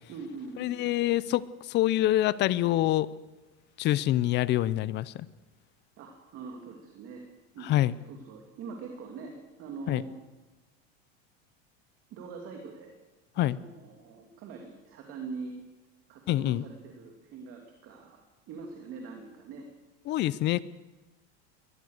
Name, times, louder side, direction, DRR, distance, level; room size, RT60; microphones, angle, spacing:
voice 1, 0.1-1.2 6.0-7.3 7.5-10.1 12.1-12.9 13.4-15.5 16.1-19.7, right 4 dB, 40° right, 2 dB, 2.9 m, -43 dB
voice 2, 0.6-3.1 3.8-5.3 7.7-7.9 9.9-10.0 13.4-13.6 16.3-16.6 20.1-20.6, left 14 dB, 30° left, 19 dB, 0.6 m, -26 dB
23.0 x 19.0 x 6.7 m, 1.1 s
supercardioid pair, 155°, 34 cm